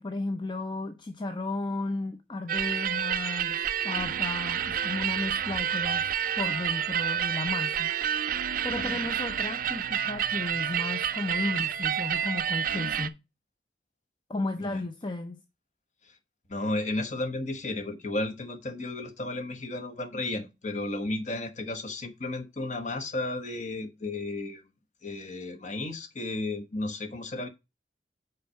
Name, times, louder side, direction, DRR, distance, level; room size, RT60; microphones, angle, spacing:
voice 1, 0.0-3.6 3.8-6.1 6.4-7.9 8.2-8.4 8.6-13.2 14.3-15.4, left 2 dB, 25° left, 0.6 m, -34 dB
sound 1, 2.5-13.1, right 9 dB, 50° right, 0.5 m, -29 dB
voice 2, 8.7-9.1 14.6-14.8 16.5-24.7 25.0-27.5, left 2 dB, 45° left, 1.2 m, -33 dB
5.8 x 4.7 x 6.2 m
head